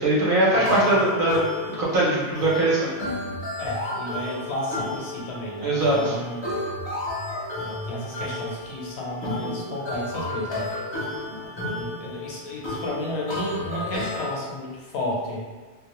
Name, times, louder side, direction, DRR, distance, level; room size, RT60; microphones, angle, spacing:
voice 1, 0.0-1.4 1.8-2.9 5.6-6.1, right 1 dB, 55° right, -6 dB, 0.7 m, -21 dB
voice 2, 0.5-1.0 3.6-6.5 7.5-10.6 11.6-15.4, left 1 dB, 70° left, -3 dB, 0.8 m, -32 dB
sound 1, 0.6-14.4, left 1 dB, 40° left, 0.4 m, -32 dB
2.1 x 2.0 x 2.9 m, 1.4 s
omnidirectional pair, 1.2 m